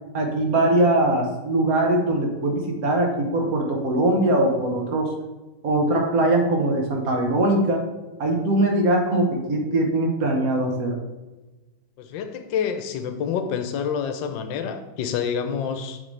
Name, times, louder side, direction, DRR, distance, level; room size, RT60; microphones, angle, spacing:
voice 1, 0.1-5.1 5.6-7.8 8.2-11.0, right 1 dB, 55° right, 1 dB, 1.4 m, -21 dB
voice 2, 12.0-16.0, left 7 dB, 85° left, 8 dB, 1.4 m, -28 dB
8.5 x 3.8 x 3.2 m, 1.1 s
omnidirectional pair, 2.0 m